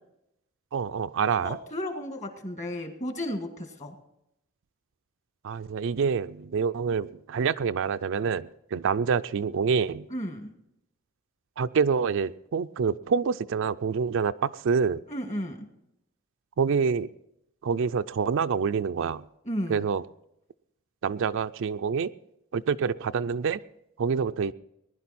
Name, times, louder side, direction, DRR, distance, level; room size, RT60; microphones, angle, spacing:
voice 1, 0.7-1.6 5.4-10.1 11.6-15.0 16.6-17.1 17.6-19.2 19.7-20.0 21.0-22.1 22.5-23.6 24.0-24.5, right 6 dB, 60° right, 12 dB, 0.4 m, -27 dB
voice 2, 1.4-4.0 10.1-10.5 15.1-15.7 19.5-19.8, equal, 35° left, 5 dB, 1.8 m, -33 dB
20.0 x 11.0 x 4.2 m, 0.80 s
head